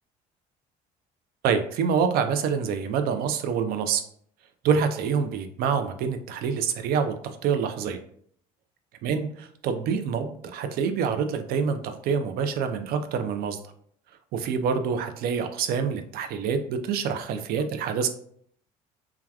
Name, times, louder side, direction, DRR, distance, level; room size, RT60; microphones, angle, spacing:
voice 1, 1.4-4.0 4.6-7.1 7.4-8.0 9.0-13.6 14.3-18.1, right 6 dB, 60° right, 8 dB, 0.4 m, -26 dB
3.3 x 2.3 x 2.2 m, 0.63 s
supercardioid pair, 70°, 17 cm